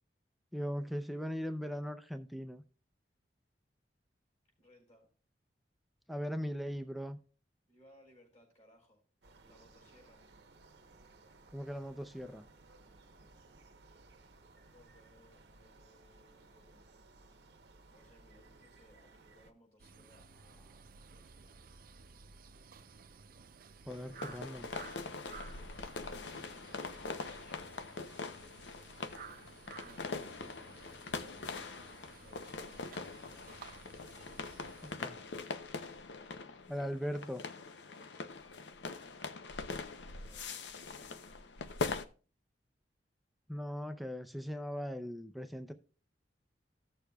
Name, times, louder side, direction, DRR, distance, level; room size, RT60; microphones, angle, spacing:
voice 1, 0.5-2.6 6.1-7.2 11.5-12.5 23.9-24.7 35.0-35.2 36.7-37.4 43.5-45.7, equal, ahead, 0.4 m, -39 dB
voice 2, 4.6-5.1 7.7-9.0 9.4-10.2 14.7-16.8 17.9-21.7 29.8-34.9 39.7-41.2 41.6-42.0, left 1 dB, 40° left, 4.2 m, -65 dB
sound 1, 9.2-19.5, right 3 dB, 75° right, 0.9 m, -60 dB
sound 2, 19.8-35.0, right 5 dB, 55° right, 0.5 m, -55 dB
sound 3, 23.9-42.0, left 4 dB, 80° left, 0.6 m, -43 dB
15.5 x 6.7 x 2.3 m
head